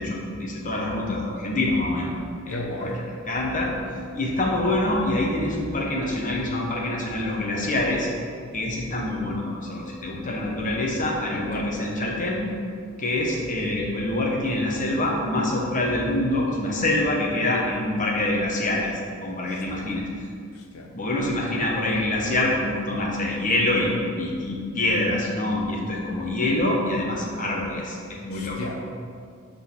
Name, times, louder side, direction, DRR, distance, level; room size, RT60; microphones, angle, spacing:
voice 1, 0.0-2.1 2.4-2.9 3.3-3.7 4.1-8.1 8.5-12.4 13.0-18.9 19.2-20.1 20.9-28.6, left 1 dB, 40° left, -1 dB, 1.2 m, -25 dB
voice 2, 2.5-3.0 3.4-3.7 11.3-12.0 19.5-19.9 20.5-20.9 28.3-28.9, left 1 dB, 80° left, 2 dB, 0.9 m, -35 dB
6.1 x 4.1 x 6.1 m, 2.2 s
head